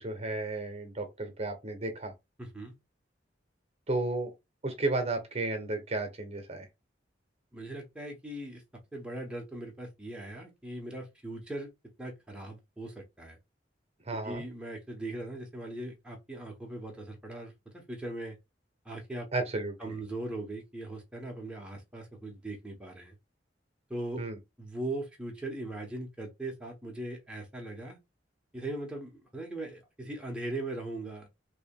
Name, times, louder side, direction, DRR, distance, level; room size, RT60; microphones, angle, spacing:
voice 1, 0.0-2.1 3.9-4.3 4.6-6.7 14.0-14.4 19.3-19.9 24.2-24.4, right 2 dB, 35° right, 1.0 m, -33 dB
voice 2, 2.4-2.7 7.5-8.6 8.9-11.7 12.0-13.4 14.2-18.4 18.8-19.3 19.8-23.1 23.9-24.2 24.6-28.0 28.5-31.3, right 1 dB, 5° right, 0.9 m, -39 dB
4.8 x 2.8 x 2.3 m
head